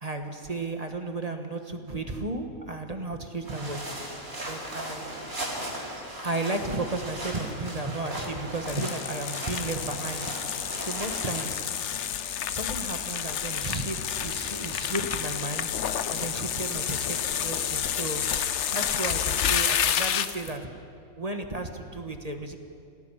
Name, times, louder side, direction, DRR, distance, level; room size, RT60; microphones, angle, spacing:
voice 1, 0.0-3.8 4.5-5.1 6.2-10.3 10.8-11.6 12.5-15.7 16.1-18.2 18.7-20.7 21.2-22.6, right 2 dB, 30° right, 5 dB, 1.4 m, -33 dB
sound 1, 3.4-11.5, right 1 dB, 75° right, 5.1 m, -37 dB
sound 2, 8.7-20.5, left 9 dB, 60° left, 1.0 m, -29 dB
28.0 x 18.5 x 5.8 m, 2.5 s
omnidirectional pair, 1.5 m